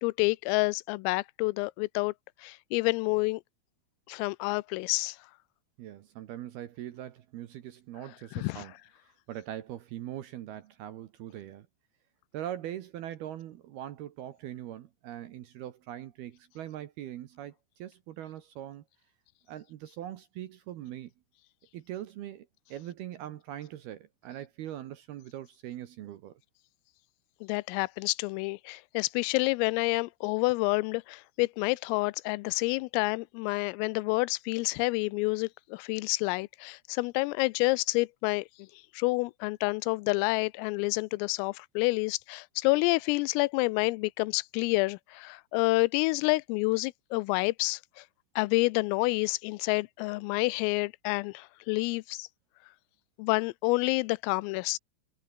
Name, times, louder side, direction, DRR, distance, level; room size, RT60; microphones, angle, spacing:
voice 1, 0.0-2.1 2.4-3.4 4.1-5.2 8.4-8.6 27.4-38.5 38.9-48.0 48.4-52.3 53.2-54.8, left 25 dB, 90° left, 3.3 m, -28 dB
voice 2, 5.8-8.7 9.3-11.7 12.3-18.8 19.5-21.1 21.7-26.4, right 12 dB, 70° right, 2.5 m, -41 dB
omnidirectional pair, 5.8 m